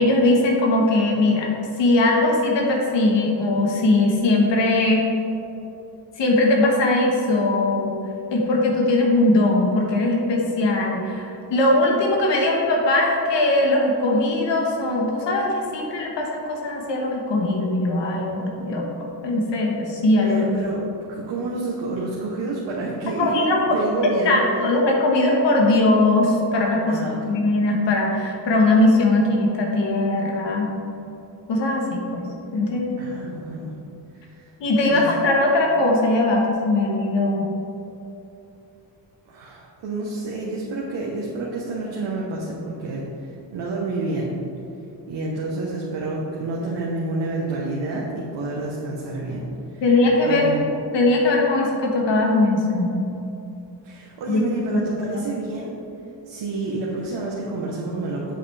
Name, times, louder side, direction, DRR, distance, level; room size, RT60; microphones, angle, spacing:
voice 1, 0.0-1.5 1.8-5.0 6.2-7.9 8.3-18.8 19.2-20.4 23.2-23.6 24.2-30.7 31.5-32.2 32.5-33.0 34.6-37.5 49.8-50.5 50.9-53.1 54.3-54.4 54.7-54.8, left 2 dB, 75° left, -1 dB, 1.5 m, -20 dB
voice 2, 20.2-20.8 21.1-24.4 26.9-27.2 33.0-33.7 34.3-34.5 34.9-35.1 39.3-44.3 45.1-49.4 49.7-49.8 50.2-50.7 53.8-55.7 56.3-58.3, right 2 dB, 80° right, -4 dB, 1.3 m, -29 dB
7.8 x 7.5 x 3.4 m, 2.9 s
cardioid pair, 65°, 43 cm